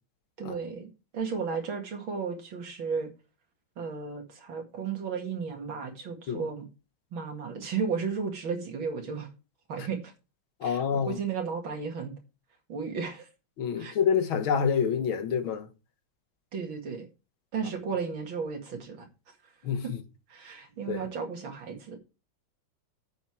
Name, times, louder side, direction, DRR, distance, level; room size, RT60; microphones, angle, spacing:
voice 1, 0.4-3.1 3.8-6.7 7.1-9.3 9.7-10.1 10.6-12.2 12.7-13.3 13.8-13.9 16.5-17.1 17.5-19.1 19.8-19.9 20.3-22.0, right 5 dB, 75° right, 2.9 m, -34 dB
voice 2, 10.6-11.2 13.6-15.7 19.6-19.8 20.9-21.0, left 7 dB, 85° left, 2.1 m, -27 dB
9.2 x 6.9 x 4.6 m
omnidirectional pair, 2.2 m